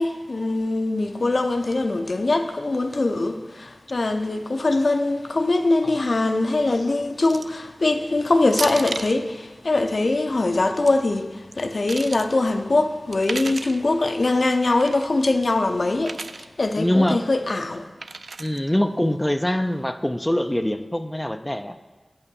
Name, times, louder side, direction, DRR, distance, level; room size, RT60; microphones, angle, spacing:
voice 1, 0.0-17.8, left 2 dB, 65° left, 0.6 m, -22 dB
sound 1, 7.2-7.6 8.5-9.2 10.5-10.9 11.5-12.3 13.1-13.8 14.7-15.1 16.0-16.5 18.0-18.6, right 3 dB, 80° right, 0.3 m, -33 dB
voice 2, 16.8-17.3 18.4-21.8, left 1 dB, 15° left, 0.4 m, -23 dB
8.3 x 5.6 x 6.9 m
cardioid pair, 45°, 0 cm